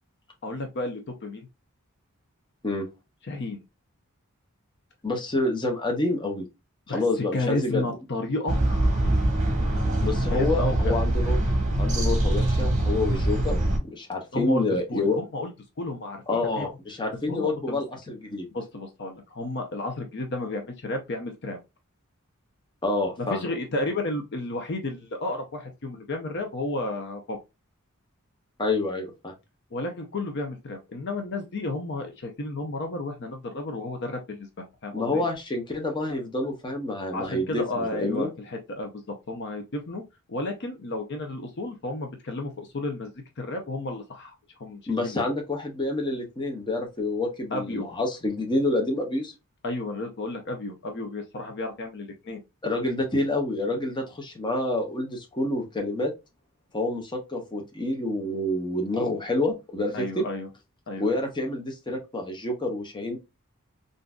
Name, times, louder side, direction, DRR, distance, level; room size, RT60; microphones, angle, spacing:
voice 1, 0.4-1.5 3.3-3.6 6.9-7.0 7.3-8.6 10.3-10.9 14.3-15.5 15.8-16.7 17.3-17.8 18.5-21.6 23.2-27.4 29.7-35.3 37.1-40.0 40.3-44.3 44.6-45.1 47.5-47.9 49.6-52.4 59.9-60.5 60.9-61.1, left 2 dB, 50° left, 4 dB, 0.6 m, -32 dB
voice 2, 5.0-6.5 6.9-7.9 10.0-11.4 11.8-13.6 13.9-15.2 16.3-18.5 22.8-23.4 28.6-29.3 34.9-38.3 44.9-49.3 52.6-56.1 56.7-60.2 61.0-63.2, left 2 dB, 20° left, 2 dB, 0.8 m, -28 dB
sound 1, 8.5-13.8, right 1 dB, 35° right, 1.1 m, -23 dB
3.7 x 2.6 x 2.3 m, 0.24 s
head